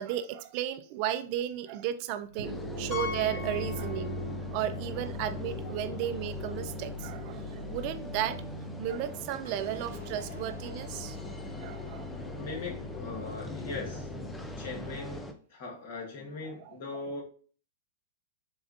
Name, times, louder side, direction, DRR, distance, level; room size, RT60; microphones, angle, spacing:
voice 1, 0.0-4.2 4.5-8.4 8.8-11.2 11.6-12.1 16.4-17.0, right 11 dB, 45° right, 0.4 m, -34 dB
sound 1, 2.2-15.2, left 1 dB, 80° right, 2.2 m, -40 dB
sound 2, 2.4-15.3, left 1 dB, 10° left, 0.5 m, -43 dB
Piano, 2.9-4.5 4.8-4.9 5.5-5.6 5.9-6.0 8.0-8.1, left 6 dB, 25° left, 1.1 m, -40 dB
voice 2, 12.3-14.1 14.6-17.2, left 3 dB, 55° left, 1.4 m, -40 dB
6.7 x 2.4 x 2.5 m
hypercardioid pair, 110°, 0 cm